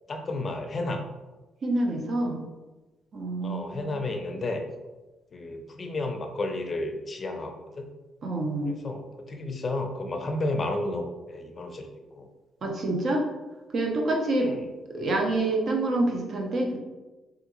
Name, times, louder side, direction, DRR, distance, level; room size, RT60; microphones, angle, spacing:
voice 1, 0.1-1.0 3.4-4.6 5.3-7.9 8.7-12.3 14.4-14.6 14.9-15.1, left 2 dB, 35° left, 5 dB, 0.5 m, -32 dB
voice 2, 1.6-2.4 3.1-4.1 8.2-8.8 12.6-13.2 13.7-14.5 14.9-16.8, right 2 dB, 50° right, 1 dB, 0.6 m, -27 dB
3.4 x 2.4 x 3.0 m, 1.2 s
cardioid pair, 90°, 0 cm